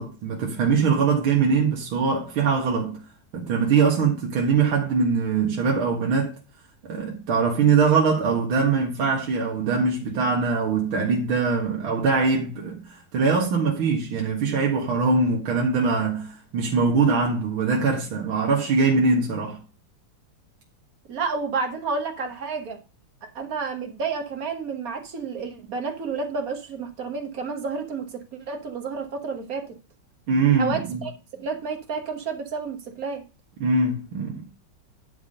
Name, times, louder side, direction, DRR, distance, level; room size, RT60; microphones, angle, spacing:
voice 1, 0.0-3.0 3.3-6.3 6.8-19.6 30.3-31.0 33.6-34.5, right 5 dB, 70° right, 2.4 m, -22 dB
voice 2, 21.1-22.8 23.3-29.7 30.6-33.2, right 5 dB, 45° right, 1.5 m, -30 dB
10.5 x 3.6 x 6.5 m
omnidirectional pair, 2.3 m